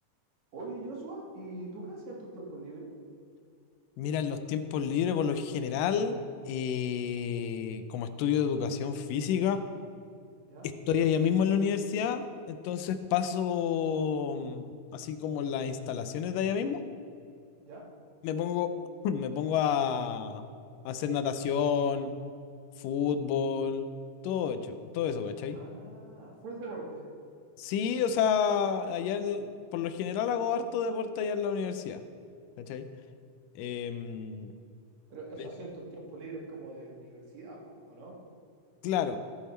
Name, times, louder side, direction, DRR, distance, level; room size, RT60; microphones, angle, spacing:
voice 1, 0.5-2.9 10.4-10.7 17.6-17.8 25.5-27.1 35.1-38.2, right 2 dB, 60° right, -2 dB, 2.7 m, -42 dB
voice 2, 4.0-6.2 6.5-9.6 10.9-16.8 18.2-18.7 19.0-20.5 20.9-22.1 22.8-23.9 24.2-25.6 27.6-32.0 32.6-32.8 33.6-34.5 38.8-39.2, left 7 dB, 80° left, 9 dB, 2.2 m, -30 dB
15.0 x 6.7 x 4.4 m, 2.4 s
omnidirectional pair, 3.9 m